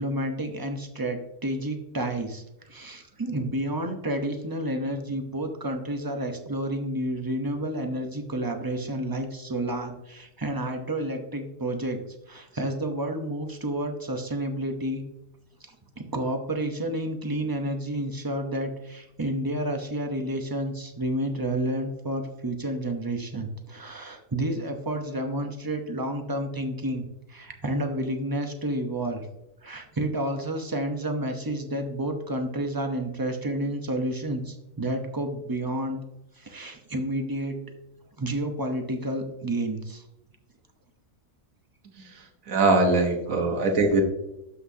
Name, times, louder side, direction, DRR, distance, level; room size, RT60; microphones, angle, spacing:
voice 1, 0.0-12.0 12.3-15.1 16.0-29.3 29.6-36.0 36.4-37.6 38.2-40.0 43.3-43.4, right 1 dB, 20° right, 4 dB, 0.7 m, -30 dB
voice 2, 42.5-44.0, right 3 dB, 75° right, 4 dB, 1.6 m, -21 dB
12.0 x 5.8 x 2.8 m, 0.88 s
omnidirectional pair, 1.4 m